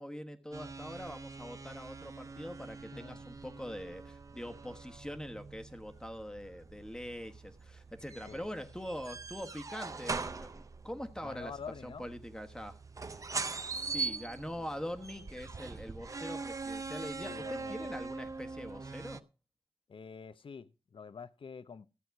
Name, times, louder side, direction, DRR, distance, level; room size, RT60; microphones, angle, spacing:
voice 1, 0.0-11.5 11.8-12.8 13.2-13.4 13.7-19.2, equal, 5° left, 1.2 m, -43 dB
sound 1, 0.5-19.2, right 4 dB, 35° right, 0.6 m, -42 dB
voice 2, 11.2-12.1 17.2-17.9 19.9-21.9, left 6 dB, 60° left, 0.7 m, -47 dB
14.0 x 7.7 x 4.7 m
wide cardioid pair, 90°, 10 cm